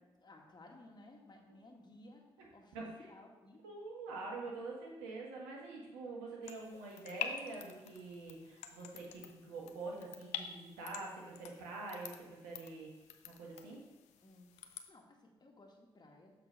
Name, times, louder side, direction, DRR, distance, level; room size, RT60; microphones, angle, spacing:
voice 1, 0.2-2.2 2.5-3.6 14.2-16.3, left 2 dB, 40° left, 1 dB, 1.7 m, -58 dB
voice 2, 3.6-12.9 13.2-13.8, right 3 dB, 85° right, -2 dB, 1.3 m, -45 dB
sound 1, 6.4-14.9, left 9 dB, 80° left, 0.5 m, -48 dB
6.9 x 4.0 x 5.5 m, 1.1 s
hypercardioid pair, 40°, 12 cm